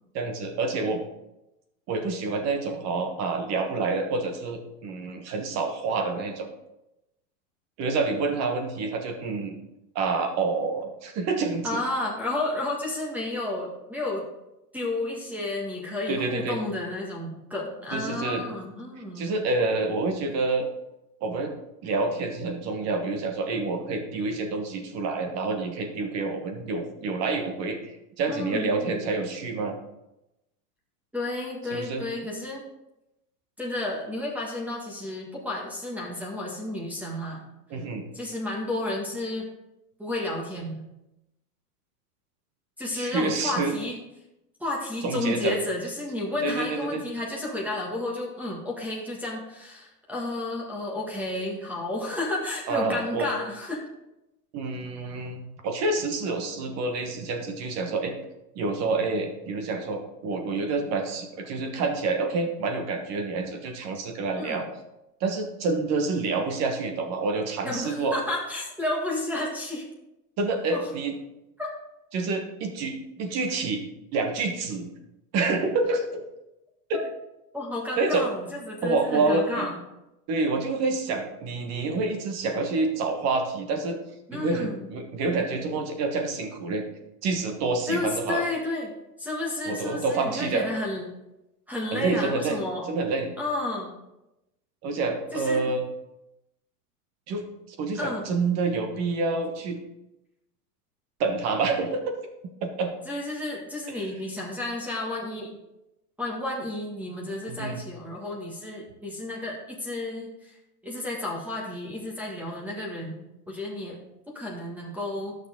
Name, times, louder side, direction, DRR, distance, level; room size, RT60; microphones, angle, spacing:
voice 1, 0.1-1.0 1.9-6.5 7.8-9.6 9.9-11.8 16.1-16.6 17.9-18.4 19.2-20.7 21.2-21.5 21.8-29.8 31.7-32.0 37.7-38.0 42.9-43.7 45.0-45.6 46.4-47.0 52.7-53.3 54.5-58.1 58.5-64.6 65.2-68.1 70.4-71.1 72.1-73.8 74.1-74.9 75.3-76.2 76.9-77.0 78.0-78.3 78.8-79.7 80.3-84.0 84.3-86.9 87.2-88.4 89.6-90.7 91.9-92.6 92.9-93.3 94.8-95.8 97.3-97.4 97.8-99.8 101.2-102.0 102.6-102.9 103.9-104.0 107.5-107.8, right 3 dB, 35° right, 5 dB, 1.3 m, -28 dB
voice 2, 11.6-14.2 14.7-19.3 28.3-29.0 31.1-32.6 33.6-37.4 38.1-39.5 40.0-40.8 42.8-44.0 44.6-53.8 64.4-64.6 67.6-69.9 70.7-70.9 71.6-71.7 76.9-77.0 77.5-79.8 84.3-84.9 87.9-88.9 89.2-91.1 91.7-92.9 93.4-93.9 95.3-95.7 97.9-98.2 103.0-105.5 106.2-110.6 110.8-113.2 113.5-114.0 114.3-115.4, left 2 dB, 5° right, -3 dB, 1.5 m, -32 dB
11.0 x 6.5 x 3.7 m, 0.91 s
supercardioid pair, 140°, 46 cm